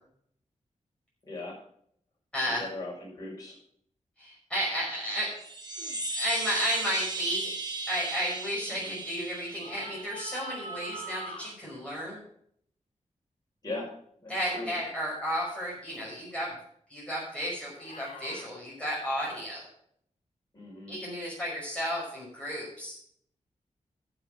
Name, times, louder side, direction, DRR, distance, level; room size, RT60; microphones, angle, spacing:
voice 1, 1.2-1.6 2.5-3.6 8.7-9.0 13.6-13.9 14.2-14.7 20.5-21.0, left 2 dB, 30° left, -2 dB, 5.5 m, -39 dB
voice 2, 4.2-5.3 6.1-7.5 7.9-12.2 14.3-16.5 16.9-19.7 20.9-23.0, equal, 10° left, -6 dB, 5.5 m, -33 dB
sound 1, 5.3-10.4, right 2 dB, 30° right, 1.9 m, -36 dB
sound 2, 5.7-6.0 9.5-11.5 14.3-14.7 15.9-16.1 17.8-18.5, right 1 dB, 60° left, 3.1 m, -43 dB
11.5 x 6.5 x 6.6 m, 0.67 s
wide cardioid pair, 80°, 13 cm